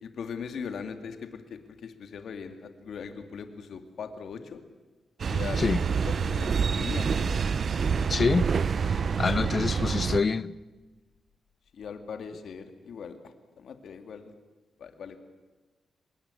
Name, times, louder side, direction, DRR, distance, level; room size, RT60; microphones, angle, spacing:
voice 1, 0.0-4.6 5.3-5.8 6.1-7.4 9.2-9.7 11.7-14.3 14.8-15.2, left 6 dB, 70° left, 2.3 m, -40 dB
sound 1, 5.2-10.2, right 6 dB, 55° right, 0.8 m, -27 dB
voice 2, 8.1-8.5 9.2-10.5, left 4 dB, 40° left, 0.8 m, -26 dB
25.0 x 21.0 x 8.5 m
cardioid pair, 90°, 0 cm